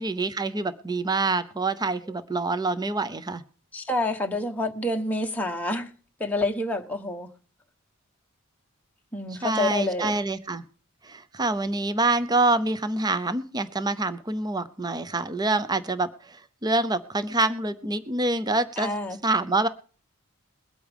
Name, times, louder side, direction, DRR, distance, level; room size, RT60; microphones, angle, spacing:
voice 1, 0.0-3.4 9.3-10.6 11.0-18.9 19.2-19.7, right 2 dB, 20° right, 0.7 m, -26 dB
voice 2, 3.7-5.9 6.2-7.3 9.1-10.2 18.8-19.2, left 2 dB, 5° left, 1.0 m, -28 dB
22.0 x 8.5 x 3.5 m
head